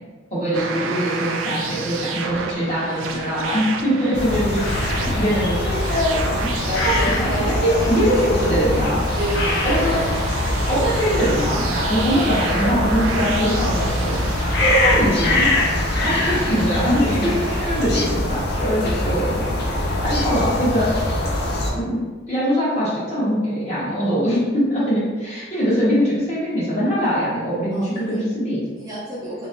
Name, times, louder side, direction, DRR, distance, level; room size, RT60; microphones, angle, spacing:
voice 1, 0.3-6.5 6.8-9.0 9.6-10.0 10.7-14.2 14.6-15.6 16.0-19.4 20.0-20.9 21.7-22.0 22.3-28.6, equal, 35° left, -10 dB, 1.3 m, -22 dB
sound 1, 0.5-17.9, right 4 dB, 75° right, 0.4 m, -31 dB
voice 2, 2.8-3.4 6.7-9.9 16.0-16.3 19.9-20.2 27.7-28.3 28.8-29.5, equal, 15° right, -9 dB, 0.6 m, -30 dB
sound 2, 4.1-21.7, left 1 dB, 50° left, 0.6 m, -23 dB
3.3 x 3.1 x 2.6 m, 1.3 s
head